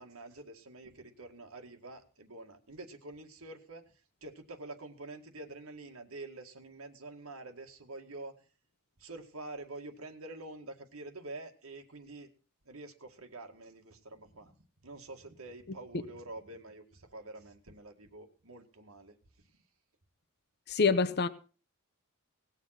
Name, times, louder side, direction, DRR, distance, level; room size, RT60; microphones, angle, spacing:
voice 1, 0.0-3.8 4.2-8.3 9.0-12.3 12.7-14.6 14.8-19.2, right 2 dB, 75° right, 5 dB, 2.0 m, -47 dB
voice 2, 20.7-21.3, left 5 dB, 50° left, 11 dB, 0.8 m, -26 dB
19.0 x 7.5 x 5.9 m, 0.37 s
head